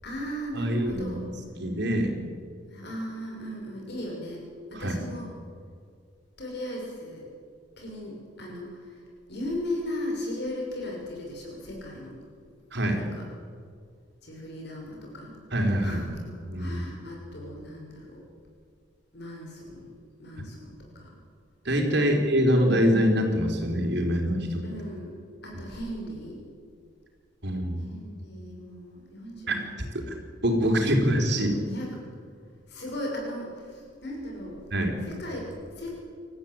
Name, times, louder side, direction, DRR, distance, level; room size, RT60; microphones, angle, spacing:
voice 1, 0.0-1.3 2.7-4.4 4.7-5.3 6.4-7.3 7.8-9.0 9.3-12.2 13.0-13.2 14.2-15.4 15.8-18.2 19.1-19.9 20.2-21.2 22.1-22.2 22.5-22.9 24.6-25.1 25.4-26.4 27.8-30.1 30.7-32.0 32.7-34.6 35.1-36.0, left 1 dB, 60° left, -1 dB, 6.5 m, -37 dB
voice 2, 0.5-1.3 1.6-2.2 4.7-5.0 12.7-13.0 15.5-16.0 16.5-16.8 21.6-24.6 27.4-27.8 29.5-29.6 30.1-30.2 30.4-31.5 34.7-34.9, equal, 65° right, 2 dB, 4.7 m, -24 dB
27.5 x 14.5 x 9.2 m, 2.1 s
head